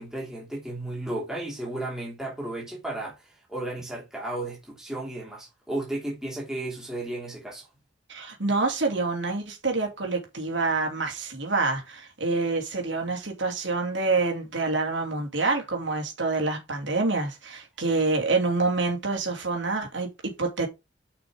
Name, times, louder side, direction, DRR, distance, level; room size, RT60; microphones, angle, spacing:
voice 1, 0.0-7.7, right 1 dB, 5° right, 2.8 m, -34 dB
voice 2, 8.1-20.7, right 3 dB, 70° right, 3.1 m, -27 dB
6.6 x 6.1 x 4.9 m
head